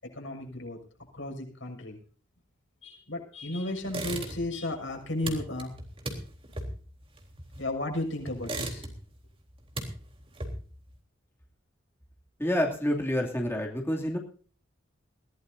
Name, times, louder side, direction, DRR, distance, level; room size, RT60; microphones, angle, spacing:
voice 1, 0.0-0.8 1.1-2.0 2.8-5.7 7.6-8.9, left 1 dB, 85° left, 2 dB, 6.4 m, -34 dB
sound 1, 3.8-4.6 4.9-7.8 8.3-9.2 9.5-10.8, right 2 dB, 30° right, 3.6 m, -37 dB
voice 2, 12.4-14.2, left 1 dB, 10° left, 0 dB, 2.7 m, -28 dB
22.0 x 17.0 x 2.7 m, 0.41 s
head